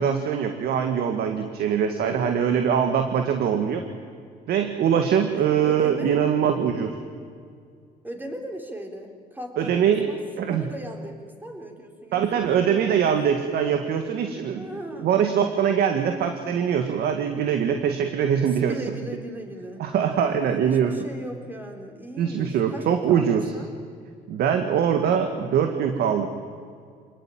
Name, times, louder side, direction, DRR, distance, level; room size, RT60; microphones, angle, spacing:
voice 1, 0.0-3.8 4.5-6.9 9.6-10.1 10.4-10.7 12.1-14.7 15.0-18.8 19.8-20.9 22.2-23.5 24.3-26.3, right 8 dB, 70° right, 6 dB, 2.0 m, -23 dB
voice 2, 1.9-2.7 5.3-6.1 8.0-10.2 10.5-11.2 11.4-13.2 14.5-15.2 18.3-23.7, right 1 dB, 10° right, 3 dB, 4.1 m, -38 dB
26.5 x 19.0 x 9.3 m, 2.2 s
cardioid pair, 110°, 17 cm